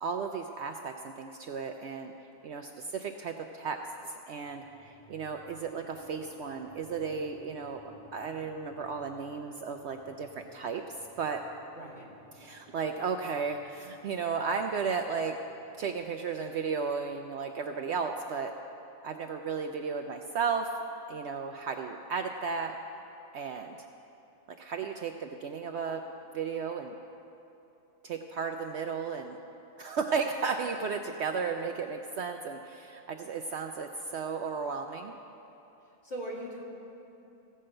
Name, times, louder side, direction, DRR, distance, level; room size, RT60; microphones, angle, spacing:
voice 1, 0.0-2.1 2.4-3.8 4.0-7.8 8.1-11.4 12.3-15.4 15.8-18.5 19.0-20.7 21.1-22.8 23.3-23.8 24.6-26.0 26.3-27.0 28.0-29.4 29.8-35.2, right 5 dB, 65° right, 5 dB, 0.7 m, -34 dB
sound 1, 4.4-16.7, left 1 dB, 30° left, 2.3 m, -56 dB
voice 2, 11.7-12.1 36.0-36.6, right 1 dB, 50° left, -5 dB, 2.4 m, -39 dB
16.0 x 5.5 x 7.6 m, 2.9 s
omnidirectional pair, 1.5 m